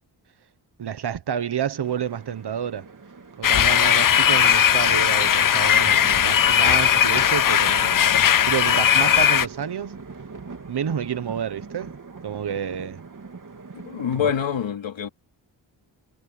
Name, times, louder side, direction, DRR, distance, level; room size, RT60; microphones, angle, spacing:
voice 1, 0.8-2.9 3.4-8.1 8.4-10.0 10.7-12.0 12.2-13.0 14.1-14.3, right 8 dB, 60° right, 1.3 m, -29 dB
sound 1, 1.8-14.3, right 4 dB, 45° right, 3.4 m, -42 dB
sound 2, 3.4-9.5, left 9 dB, 50° left, 0.6 m, -18 dB
voice 2, 13.8-15.1, left 8 dB, 85° left, 3.7 m, -26 dB
wide cardioid pair, 95°, 44 cm